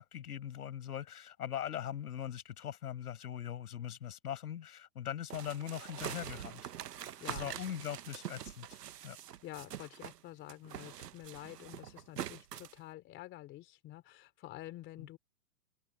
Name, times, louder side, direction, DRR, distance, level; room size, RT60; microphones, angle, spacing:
voice 1, 0.0-6.7 7.3-8.8 9.0-9.2 15.0-15.1, left 10 dB, 70° left, 5.6 m, -41 dB
sound 1, 5.3-10.2 10.5-12.8, right 11 dB, 90° right, 1.1 m, -44 dB
voice 2, 6.9-7.6 9.4-15.2, left 15 dB, 25° left, 3.1 m, -49 dB
open air
hypercardioid pair, 145°, 46 cm